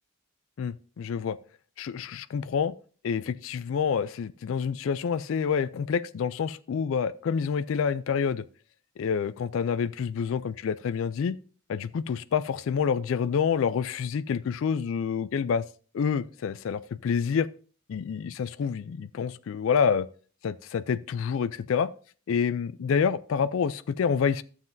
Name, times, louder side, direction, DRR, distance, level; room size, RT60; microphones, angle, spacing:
voice 1, 0.6-1.4 1.8-2.7 3.0-8.4 9.0-11.4 11.7-15.6 15.9-17.5 17.9-20.1 20.4-21.9 22.3-24.4, left 6 dB, 65° left, 0.3 m, -27 dB
12.0 x 7.4 x 2.6 m
head